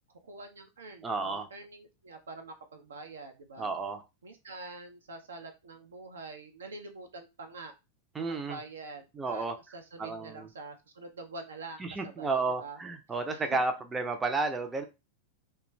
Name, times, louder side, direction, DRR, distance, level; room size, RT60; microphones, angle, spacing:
voice 1, 0.2-3.7 4.2-7.7 8.2-12.8 13.3-13.6, right 3 dB, 70° right, 5 dB, 0.4 m, -46 dB
voice 2, 1.0-1.5 3.6-4.0 8.1-8.6 9.2-9.5 10.0-10.5 11.8-14.8, right 3 dB, 15° right, 5 dB, 0.5 m, -32 dB
2.4 x 2.2 x 3.0 m, 0.26 s
figure-of-eight pair, 90°, 0 cm